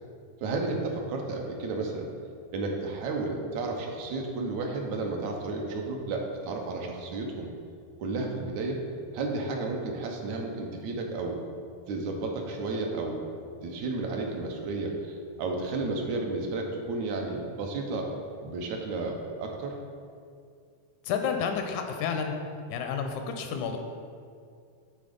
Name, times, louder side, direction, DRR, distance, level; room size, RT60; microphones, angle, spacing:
voice 1, 0.4-2.1 2.5-7.5 8.0-8.8 9.1-11.4 11.9-13.3 13.6-18.1 18.4-19.8, right 3 dB, 80° right, 1 dB, 2.2 m, -32 dB
voice 2, 21.0-22.3 22.7-23.8, left 6 dB, 90° left, 5 dB, 2.1 m, -30 dB
10.0 x 3.7 x 5.2 m, 2.2 s
omnidirectional pair, 3.3 m